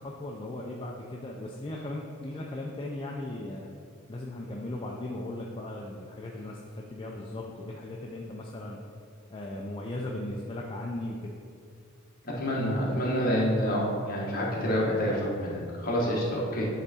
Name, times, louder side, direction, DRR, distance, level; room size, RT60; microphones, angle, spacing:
voice 1, 0.0-3.7 4.1-8.8 9.3-11.3 16.0-16.2, left 1 dB, 25° left, -1 dB, 0.4 m, -37 dB
voice 2, 12.2-16.7, equal, 40° left, -4 dB, 1.2 m, -28 dB
8.3 x 3.5 x 4.1 m, 2.3 s
head